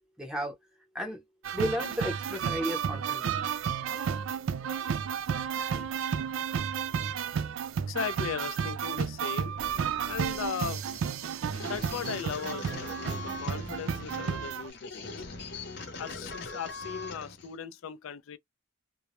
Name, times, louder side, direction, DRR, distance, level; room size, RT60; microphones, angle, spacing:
voice 1, 0.2-0.6 0.9-1.2 1.5-3.5, equal, 5° right, 0.7 m, -33 dB
sound 1, 1.4-14.7, right 7 dB, 70° right, 0.3 m, -32 dB
voice 2, 7.9-9.6 10.1-10.8 11.6-15.2 16.0-18.4, left 7 dB, 70° left, 0.4 m, -37 dB
sound 2, 9.6-17.5, left 3 dB, 55° left, 0.7 m, -42 dB
2.2 x 2.0 x 2.9 m
head